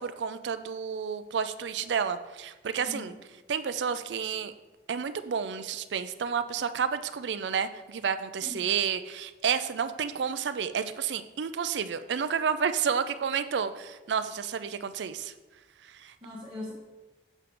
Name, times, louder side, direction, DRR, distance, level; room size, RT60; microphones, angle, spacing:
voice 1, 0.0-3.1 3.5-4.5 4.9-15.3 16.0-16.1, right 7 dB, 85° right, 12 dB, 0.4 m, -30 dB
voice 2, 2.8-3.2 8.4-8.8 16.2-16.7, left 2 dB, 25° right, -7 dB, 1.2 m, -41 dB
7.2 x 5.5 x 3.8 m, 1.1 s
head